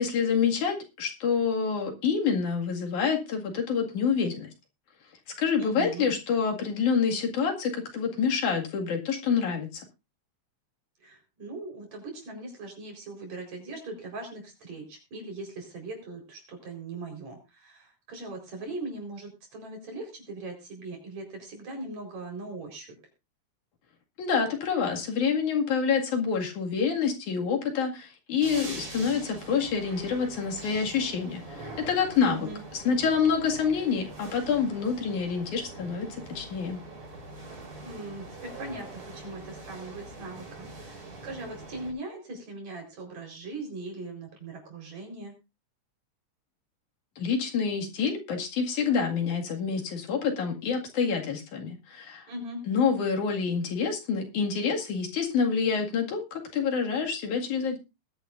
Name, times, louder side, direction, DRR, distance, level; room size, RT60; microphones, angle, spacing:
voice 1, 0.0-4.5 5.4-9.8 24.2-32.5 32.9-36.8 47.2-52.3 52.7-57.8, left 6 dB, 80° left, 2 dB, 3.6 m, -27 dB
voice 2, 5.6-6.1 11.0-23.0 32.3-32.6 37.8-45.3 52.3-52.6, right 2 dB, 65° right, 2 dB, 5.6 m, -40 dB
sound 1, 28.4-41.9, right 2 dB, 85° right, 7.6 m, -43 dB
20.5 x 9.9 x 2.6 m, 0.26 s
omnidirectional pair, 3.4 m